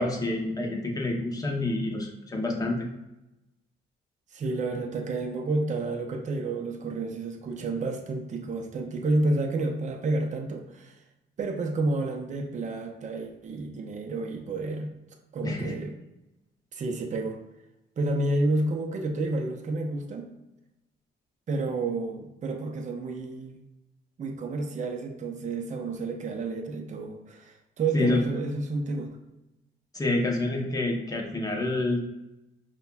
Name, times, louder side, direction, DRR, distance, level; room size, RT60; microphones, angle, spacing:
voice 1, 0.0-2.9 15.4-15.7 27.9-28.2 29.9-32.0, left 2 dB, 20° left, 1 dB, 0.8 m, -28 dB
voice 2, 4.3-11.0 11.4-14.9 15.3-15.9 16.7-17.4 18.0-20.3 21.5-23.6 24.2-29.1, right 2 dB, 40° right, 3 dB, 0.5 m, -30 dB
5.3 x 2.2 x 2.3 m, 0.94 s
cardioid pair, 90°, 20 cm